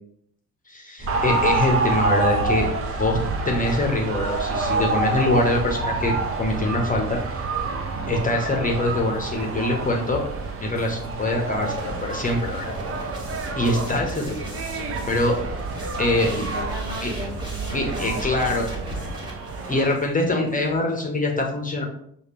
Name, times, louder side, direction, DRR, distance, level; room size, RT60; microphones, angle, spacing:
voice 1, 0.7-2.7 3.0-3.2 3.4-7.2 8.1-10.2 10.6-12.7 13.6-14.4 15.1-15.4 16.0-16.4 17.0-17.1 17.7-18.7 19.7-21.8, left 2 dB, 15° left, 0 dB, 0.9 m, -24 dB
sound 1, 1.0-19.1, right 1 dB, 60° right, 1.5 m, -35 dB
sound 2, 1.1-20.0, right 4 dB, 30° right, 0.6 m, -29 dB
sound 3, 11.5-20.8, equal, 10° right, 1.6 m, -38 dB
voice 2, 16.0-19.2 19.5-19.9, equal, 90° right, -3 dB, 0.6 m, -38 dB
6.4 x 2.3 x 3.3 m, 0.68 s
figure-of-eight pair, 50°, 47 cm